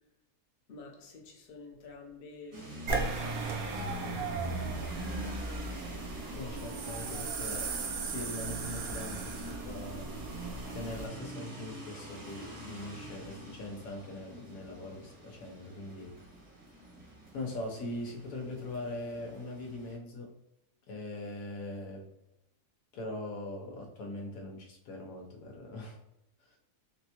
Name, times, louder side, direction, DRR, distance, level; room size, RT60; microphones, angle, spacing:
voice 1, 0.7-5.6, left 3 dB, 50° left, 0 dB, 0.7 m, -51 dB
sound 1, 2.5-20.0, right 1 dB, 35° right, 0.8 m, -46 dB
sound 2, 2.9-11.1, right 3 dB, 70° right, 1.0 m, -36 dB
voice 2, 6.3-7.7 8.0-10.1 10.7-16.1 17.3-20.3 20.9-22.1 22.9-26.0 26.4-26.6, left 2 dB, 85° left, 1 dB, 1.3 m, -41 dB
3.7 x 2.2 x 2.8 m, 0.87 s
omnidirectional pair, 1.6 m